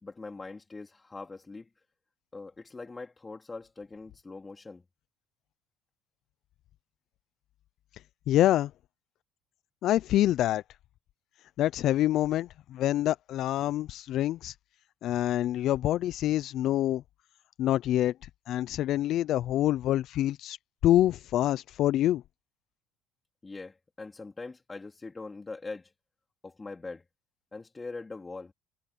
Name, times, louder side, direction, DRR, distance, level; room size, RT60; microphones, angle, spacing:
voice 1, 0.0-1.7 2.3-4.8 23.4-25.9 26.4-27.0 27.5-28.5, left 3 dB, 20° left, 3.6 m, -42 dB
voice 2, 8.3-8.7 9.8-10.6 11.6-14.5 15.0-17.0 17.6-18.1 18.5-20.6 20.8-22.2, left 13 dB, 60° left, 0.6 m, -26 dB
hypercardioid pair, 70°, 0 cm